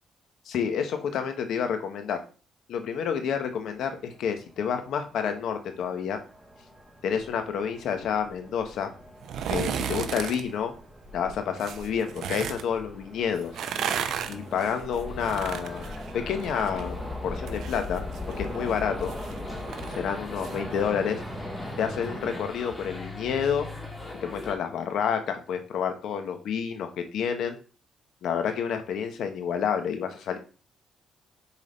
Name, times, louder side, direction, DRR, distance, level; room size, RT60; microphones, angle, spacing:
voice 1, 0.4-2.2 2.7-6.2 7.0-8.9 9.5-10.7 11.1-13.5 14.3-15.8 16.1-18.0 18.4-19.1 19.9-21.2 21.8-23.7 24.2-27.6 28.2-30.4, left 7 dB, 75° left, 7 dB, 1.6 m, -29 dB
sound 1, 3.5-22.5, equal, 5° right, 2.4 m, -42 dB
sound 2, 9.2-10.4 11.6-12.6 13.4-16.8 17.1-20.6 20.9-21.0, right 8 dB, 75° right, 0.8 m, -34 dB
sound 3, 15.1-24.5, left 3 dB, 20° left, 2.4 m, -39 dB
7.2 x 4.1 x 5.5 m, 0.35 s
cardioid pair, 90°, 0 cm